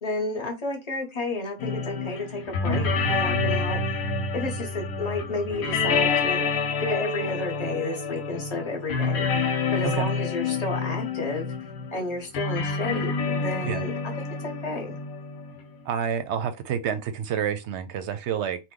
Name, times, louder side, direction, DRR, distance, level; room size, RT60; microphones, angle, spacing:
voice 1, 0.0-3.8 4.3-6.4 6.8-9.3 9.7-11.4 11.9-15.0, left 2 dB, 30° left, 1.0 m, -31 dB
sound 1, 1.6-15.8, left 4 dB, 85° left, 1.1 m, -28 dB
voice 2, 15.8-18.6, right 8 dB, 65° right, 0.8 m, -28 dB
3.0 x 2.2 x 3.6 m
omnidirectional pair, 1.4 m